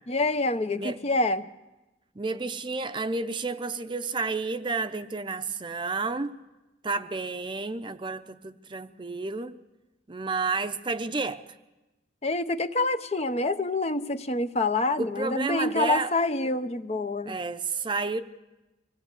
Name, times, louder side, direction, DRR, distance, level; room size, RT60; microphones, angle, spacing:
voice 1, 0.1-1.5 12.2-17.4, left 2 dB, 35° left, 0.9 m, -27 dB
voice 2, 2.2-6.4 6.8-9.6 10.1-11.4 15.0-16.1 17.3-18.2, right 3 dB, 25° right, 0.7 m, -31 dB
25.0 x 18.0 x 8.2 m
head